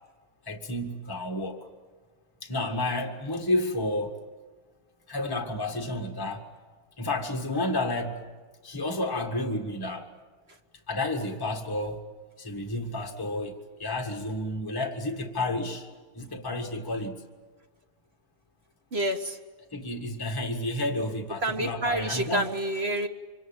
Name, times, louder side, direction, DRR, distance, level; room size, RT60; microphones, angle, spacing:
voice 1, 0.4-1.7 2.4-4.2 5.1-6.4 7.0-8.3 8.6-10.1 10.9-12.0 12.4-15.9 16.1-17.3 19.7-22.5, left 1 dB, 15° left, 2 dB, 1.8 m, -31 dB
voice 2, 18.9-19.4 21.4-23.1, right 1 dB, 45° right, 6 dB, 1.6 m, -28 dB
25.5 x 25.0 x 8.8 m, 1.4 s
omnidirectional pair, 1.5 m